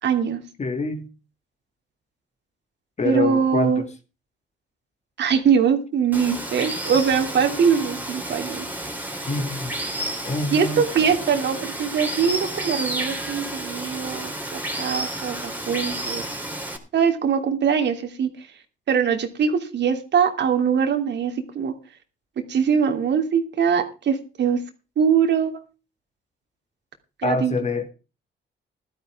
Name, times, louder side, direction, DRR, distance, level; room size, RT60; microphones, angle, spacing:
voice 1, 0.0-0.4 3.0-3.8 5.2-8.7 10.5-16.2 16.9-18.3 18.9-21.7 22.5-24.6 25.0-25.5 27.2-27.6, right 7 dB, 60° right, 6 dB, 2.9 m, -22 dB
voice 2, 0.6-1.1 3.0-3.9 9.3-9.7 10.2-11.2 27.2-27.9, left 3 dB, 35° left, 7 dB, 2.5 m, -26 dB
Water, 6.1-16.8, right 1 dB, 10° right, 3.6 m, -31 dB
15.5 x 12.5 x 3.6 m, 0.32 s
cardioid pair, 90°, 20 cm